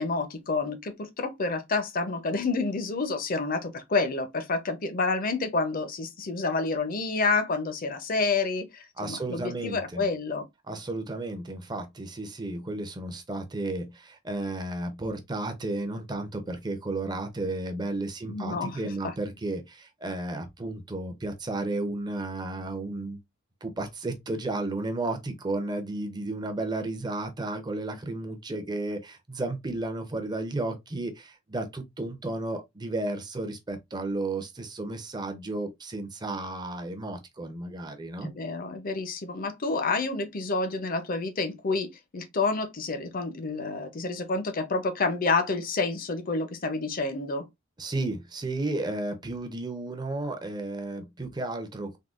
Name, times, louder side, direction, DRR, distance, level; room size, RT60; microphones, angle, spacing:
voice 1, 0.0-10.4 18.2-18.8 19.0-19.2 38.2-47.5, left 3 dB, 45° left, 0.6 m, -29 dB
voice 2, 9.0-10.1 10.7-23.2 23.6-38.3 47.8-52.0, right 2 dB, 20° right, 0.5 m, -33 dB
3.6 x 2.2 x 2.4 m
head